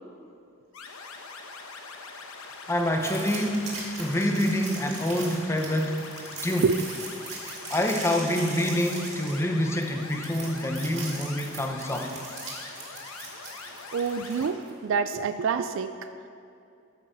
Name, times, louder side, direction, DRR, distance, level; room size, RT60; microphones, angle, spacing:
sound 1, 0.7-14.5, left 4 dB, 90° left, 1.0 m, -43 dB
voice 1, 2.7-3.7 4.0-6.0 6.4-6.7 7.7-12.1, left 1 dB, 10° left, 2 dB, 0.7 m, -26 dB
sound 2, 3.0-14.7, right 3 dB, 35° right, 2.0 m, -40 dB
voice 2, 13.9-16.1, right 5 dB, 65° right, 10 dB, 0.3 m, -27 dB
13.5 x 5.4 x 5.5 m, 2.5 s
head